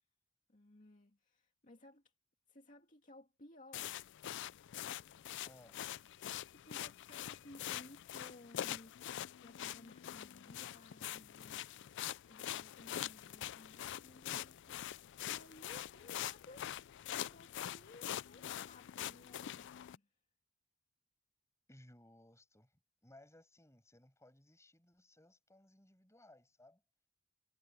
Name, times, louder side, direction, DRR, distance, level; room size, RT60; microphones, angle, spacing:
voice 1, 0.5-2.1 2.5-4.0 6.3-12.0 12.3-16.7 16.9-20.2, left 1 dB, 35° left, 2.4 m, -59 dB
sound 1, 3.7-20.0, left 11 dB, 55° left, 0.3 m, -44 dB
voice 2, 5.4-5.8 21.7-26.8, left 1 dB, 15° left, 6.2 m, -62 dB
head